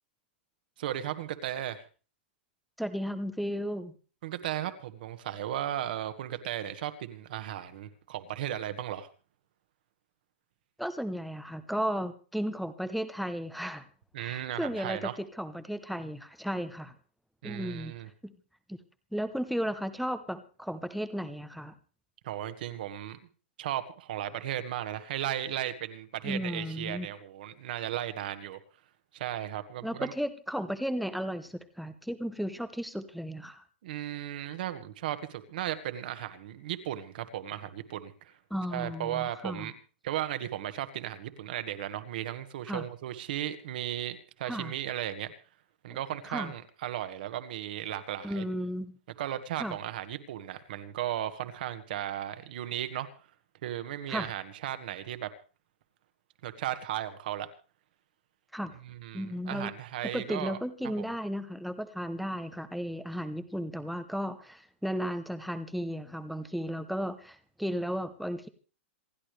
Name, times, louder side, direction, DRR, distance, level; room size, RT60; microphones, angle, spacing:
voice 1, 0.8-1.8 4.2-9.1 14.1-15.2 17.4-18.1 22.2-23.2 23.6-28.6 29.1-30.1 33.8-38.3 38.7-39.7 40.0-45.3 45.8-48.4 49.2-53.1 53.6-55.3 56.4-57.5 58.8-60.6, right 12 dB, 50° right, 10 dB, 1.6 m, -35 dB
voice 2, 2.8-4.0 10.8-13.9 14.2-16.9 17.4-17.9 18.2-18.3 18.7-18.8 19.1-21.7 26.2-27.1 29.8-33.6 38.5-39.7 42.7-42.8 44.4-44.7 46.2-46.5 48.2-49.0 49.6-49.8 54.1-54.3 58.5-58.8 59.1-59.7 60.1-68.5, equal, ahead, 10 dB, 0.9 m, -34 dB
27.5 x 11.0 x 3.3 m, 0.37 s
supercardioid pair, 170°, 6 cm